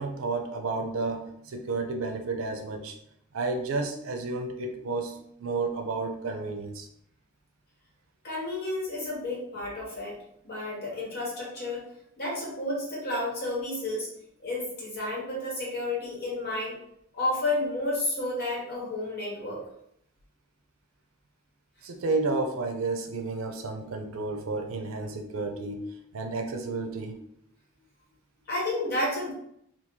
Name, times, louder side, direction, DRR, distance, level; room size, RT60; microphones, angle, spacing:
voice 1, 0.0-3.0 3.3-6.9 21.8-27.1, right 3 dB, 75° right, 4 dB, 0.5 m, -31 dB
voice 2, 8.2-10.2 10.4-11.9 12.2-14.1 14.4-16.8 17.1-19.6 28.5-29.3, left 2 dB, 50° left, -4 dB, 1.3 m, -31 dB
3.0 x 2.3 x 3.6 m, 0.73 s
head